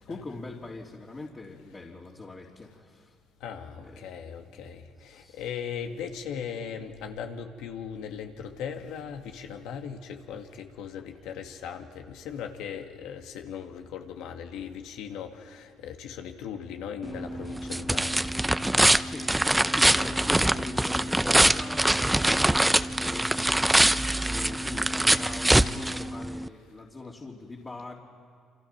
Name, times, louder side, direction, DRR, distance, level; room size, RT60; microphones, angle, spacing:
voice 1, 0.0-3.2 3.8-4.6 5.0-5.4 11.0-11.1 19.0-19.3 19.7-27.9, left 3 dB, 30° left, -2 dB, 3.3 m, -42 dB
voice 2, 3.4-18.5, left 7 dB, 80° left, 4 dB, 2.2 m, -38 dB
sound 1, 17.0-26.5, right 1 dB, 10° right, 0.7 m, -24 dB
28.5 x 26.5 x 6.0 m, 2.3 s
supercardioid pair, 75°, 0 cm